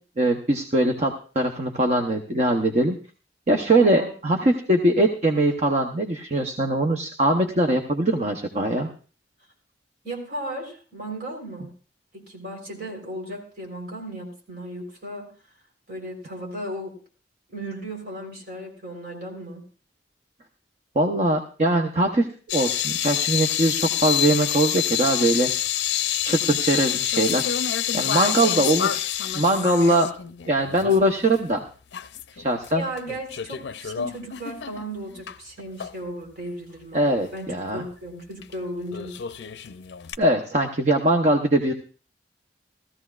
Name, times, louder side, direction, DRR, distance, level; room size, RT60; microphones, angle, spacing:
voice 1, 0.2-3.0 3.5-8.9 20.9-25.5 26.2-27.5 27.9-29.0 29.3-30.1 30.5-31.6 32.4-32.8 36.9-37.8 40.2-41.7, right 1 dB, 40° right, 4 dB, 0.8 m, -22 dB
voice 2, 3.8-4.1 10.0-11.7 12.1-15.3 15.9-17.0 17.5-19.6 28.3-28.7 32.3-32.5 32.7-39.2, right 1 dB, 60° right, 0 dB, 3.7 m, -36 dB
sound 1, 22.5-31.1 31.4-31.5 31.9-32.7 33.0-35.4 35.8-35.9 38.4-38.5 38.9-40.2, left 11 dB, 75° left, 0.4 m, -27 dB
17.0 x 14.0 x 2.4 m, 0.38 s
head